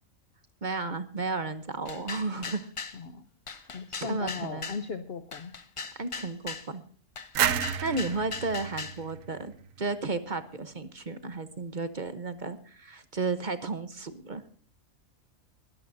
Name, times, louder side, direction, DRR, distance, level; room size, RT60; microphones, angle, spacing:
voice 1, 0.6-2.7 4.0-4.8 6.0-6.8 7.8-9.5 9.8-14.4, right 3 dB, 35° right, 11 dB, 1.0 m, -33 dB
sound 1, 1.9-3.0 3.5-4.8 5.3-6.7 7.2-9.0, left 4 dB, 30° left, 0.6 m, -39 dB
voice 2, 2.9-3.3 3.7-5.5, left 5 dB, 50° left, 9 dB, 0.9 m, -37 dB
sound 2, 7.3-10.1, right 9 dB, 70° right, 1.1 m, -31 dB
21.5 x 13.0 x 2.7 m, 0.44 s
omnidirectional pair, 1.5 m